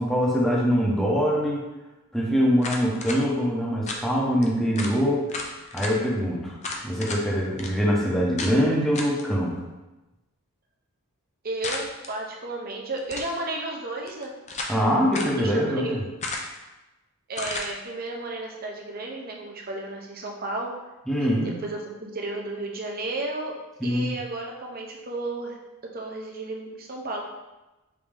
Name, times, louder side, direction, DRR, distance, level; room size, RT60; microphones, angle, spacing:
voice 1, 0.0-1.7 2.1-5.3 5.7-6.6 6.8-9.5 14.7-16.0 21.1-21.6 23.8-24.1, equal, ahead, -5 dB, 0.7 m, -23 dB
sound 1, 2.6-3.2 3.9-4.0 4.4-4.5 4.8-5.0 5.3-5.9 6.6-7.2 7.6-7.7 8.4-8.6 8.9-9.2 11.6-12.1 13.0-13.4 14.1-14.8 15.1-15.4 16.2-16.6 17.3-17.7, left 3 dB, 30° left, 0.4 m, -33 dB
voice 2, 11.4-14.3 15.4-16.0 17.3-20.7 21.4-23.5 23.8-25.6 25.9-27.2, right 2 dB, 40° right, 0 dB, 0.7 m, -33 dB
5.2 x 2.7 x 3.4 m, 1.0 s
head